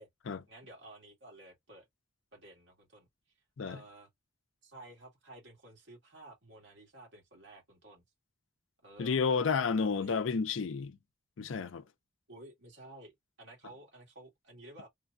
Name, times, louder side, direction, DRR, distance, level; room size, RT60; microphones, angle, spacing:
voice 1, 0.5-1.9 2.3-3.1 3.7-4.1 4.6-8.0 8.8-9.4 9.8-10.2 12.3-14.9, right 1 dB, 65° right, 1.8 m, -53 dB
voice 2, 9.0-11.0 11.4-11.8, left 5 dB, 75° left, 0.5 m, -31 dB
3.2 x 2.2 x 2.5 m
head